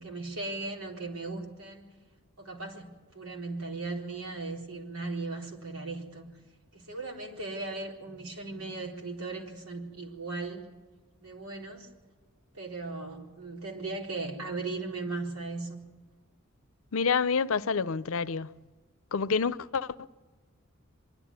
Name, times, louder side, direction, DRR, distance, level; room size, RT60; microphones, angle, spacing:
voice 1, 0.0-1.9 2.4-6.4 6.7-10.6 11.2-11.9 12.5-15.8, right 3 dB, 90° right, 4.2 m, -37 dB
voice 2, 16.9-18.6 19.1-20.1, left 5 dB, 70° left, 0.6 m, -28 dB
24.0 x 12.0 x 9.6 m
head